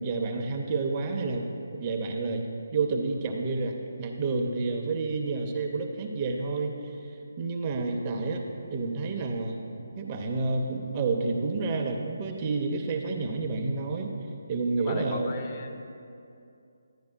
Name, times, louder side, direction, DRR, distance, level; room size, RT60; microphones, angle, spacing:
voice 1, 0.0-1.5 1.7-7.0 7.4-8.4 8.7-9.6 10.0-14.1 14.5-15.3, right 3 dB, 25° right, 2 dB, 0.6 m, -29 dB
voice 2, 14.8-16.0, left 2 dB, 25° left, 2 dB, 0.6 m, -36 dB
10.5 x 10.0 x 2.2 m, 2.5 s
figure-of-eight pair, 150°, 0 cm